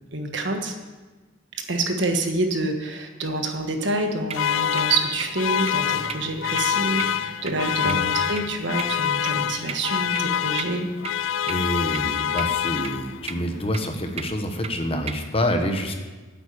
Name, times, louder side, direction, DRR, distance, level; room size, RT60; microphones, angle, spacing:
voice 1, 0.1-0.7 1.7-10.9, right 2 dB, 60° right, 4 dB, 1.4 m, -27 dB
sound 1, 4.3-13.3, left 9 dB, 75° left, 0.4 m, -26 dB
sound 2, 4.3-15.2, right 6 dB, 30° right, 0.5 m, -39 dB
sound 3, 5.8-11.2, right 1 dB, 90° right, 3.4 m, -48 dB
voice 2, 11.4-15.9, equal, 30° left, 5 dB, 1.1 m, -27 dB
9.5 x 8.3 x 8.6 m, 1.3 s
head